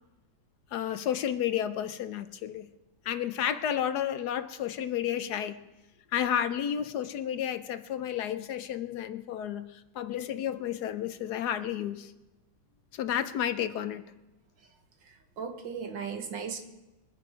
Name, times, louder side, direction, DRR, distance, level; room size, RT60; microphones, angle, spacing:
voice 1, 0.7-2.7 3.0-5.6 6.1-12.1 12.9-14.0, left 10 dB, 70° left, 12 dB, 1.1 m, -31 dB
voice 2, 15.0-16.6, right 6 dB, 80° right, 6 dB, 2.1 m, -37 dB
23.0 x 9.2 x 4.9 m, 1.0 s
omnidirectional pair, 2.0 m